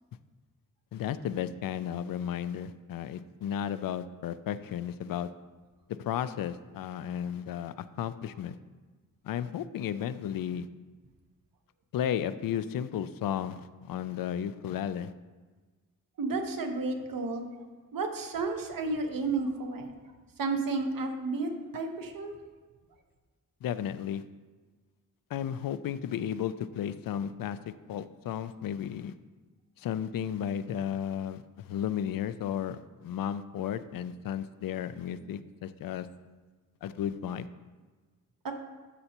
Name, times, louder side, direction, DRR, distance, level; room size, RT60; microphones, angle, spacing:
voice 1, 0.9-5.3 5.9-8.6 9.2-10.7 11.9-15.1 23.6-24.2 25.3-27.6 27.9-29.1 29.8-36.1 36.8-37.5, left 9 dB, 90° left, 13 dB, 0.5 m, -34 dB
voice 2, 16.2-17.5 17.9-19.9 20.4-22.4 38.4-38.5, right 3 dB, 85° right, 4 dB, 1.1 m, -32 dB
12.5 x 6.6 x 2.9 m, 1.4 s
wide cardioid pair, 120°, 33 cm